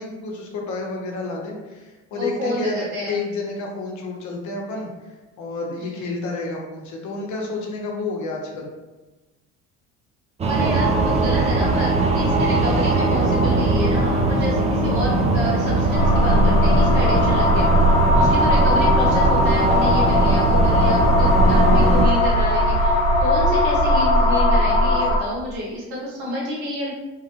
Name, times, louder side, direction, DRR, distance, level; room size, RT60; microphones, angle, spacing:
voice 1, 0.0-8.7, left 3 dB, 50° left, 0 dB, 0.8 m, -30 dB
voice 2, 2.1-3.2 5.8-6.1 10.4-17.7 18.1-26.9, equal, 75° right, -5 dB, 0.9 m, -29 dB
sound 1, 10.4-22.0, right 2 dB, 20° right, 0.4 m, -20 dB
sound 2, 15.9-25.2, left 1 dB, 85° left, 0.6 m, -18 dB
2.9 x 2.4 x 2.4 m, 1.2 s
hypercardioid pair, 60°, 38 cm